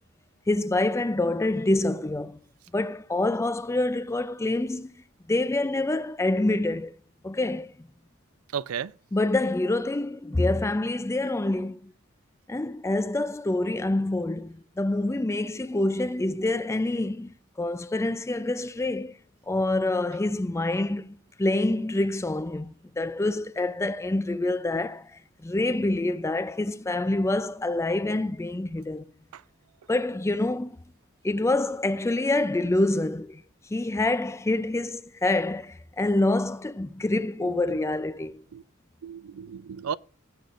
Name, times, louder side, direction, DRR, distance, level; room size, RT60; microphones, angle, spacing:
voice 1, 0.5-2.4 2.7-4.9 5.3-6.9 7.2-7.9 9.1-11.9 12.5-19.2 19.5-29.1 29.9-30.8 31.2-33.4 33.7-38.4, left 2 dB, 15° left, 0.4 m, -26 dB
voice 2, 8.5-8.9 29.3-29.4 37.4-37.8 38.5-38.6 39.0-40.0, right 7 dB, 75° right, 0.4 m, -34 dB
19.5 x 8.4 x 2.5 m
head